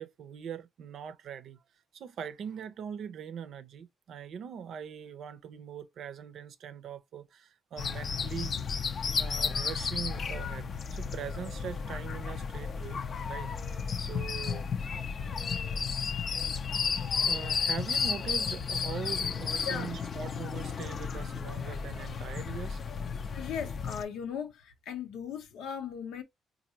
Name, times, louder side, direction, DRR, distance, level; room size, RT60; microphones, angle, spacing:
voice 1, 0.0-1.6 1.9-8.5 9.1-14.7 17.3-22.8, right 8 dB, 70° right, 0.5 m, -42 dB
sound 1, 7.8-24.0, left 6 dB, 55° left, 0.5 m, -33 dB
voice 2, 23.3-26.2, left 7 dB, 85° left, 0.7 m, -37 dB
4.0 x 2.5 x 2.7 m
cardioid pair, 75°, 0 cm